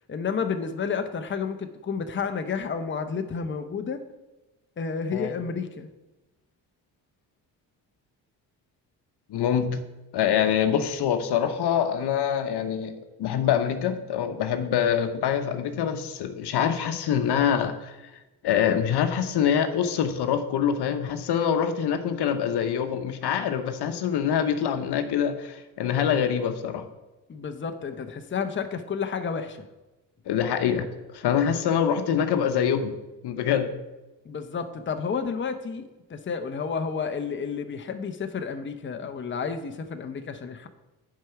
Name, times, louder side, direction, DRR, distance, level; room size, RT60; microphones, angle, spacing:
voice 1, 0.1-4.0 4.8-5.9 27.3-29.6 34.2-40.7, left 6 dB, 30° left, 8 dB, 0.7 m, -31 dB
voice 2, 9.3-9.8 10.1-18.0 18.4-26.8 30.3-30.9 31.1-32.9 33.2-33.7, left 8 dB, 70° left, 8 dB, 0.9 m, -25 dB
7.5 x 4.9 x 5.8 m, 1.1 s
supercardioid pair, 65°, 42 cm